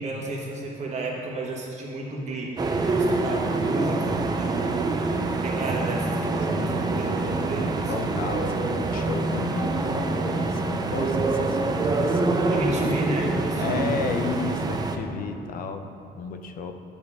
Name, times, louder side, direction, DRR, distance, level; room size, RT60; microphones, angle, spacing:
voice 1, 0.0-4.9 5.4-7.9 12.5-14.0 14.4-14.6, right 2 dB, 40° right, -2 dB, 1.5 m, -32 dB
sound 1, 2.6-15.0, right 3 dB, 25° right, 0.5 m, -26 dB
voice 2, 6.5-7.6 7.9-13.0 13.6-16.7, left 5 dB, 60° left, 7 dB, 0.5 m, -34 dB
7.8 x 6.8 x 3.6 m, 2.7 s
cardioid pair, 110°, 17 cm